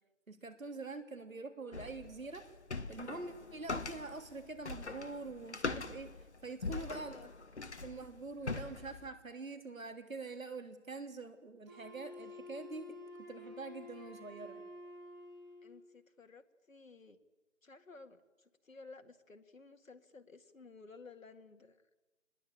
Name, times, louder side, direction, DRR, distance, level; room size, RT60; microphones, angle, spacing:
voice 1, 0.3-2.5 2.9-7.3 7.8-14.6, right 3 dB, 90° right, 8 dB, 3.3 m, -45 dB
sound 1, 1.7-9.1, left 3 dB, 55° left, 1.5 m, -42 dB
voice 2, 6.7-7.3 15.6-17.2 17.6-21.8, left 3 dB, 80° left, 6 dB, 2.0 m, -55 dB
Wind instrument woodwind instrument, 11.7-15.8, left 2 dB, 15° right, 3.5 m, -50 dB
26.5 x 20.5 x 8.7 m, 1.2 s
figure-of-eight pair, 180°, 39 cm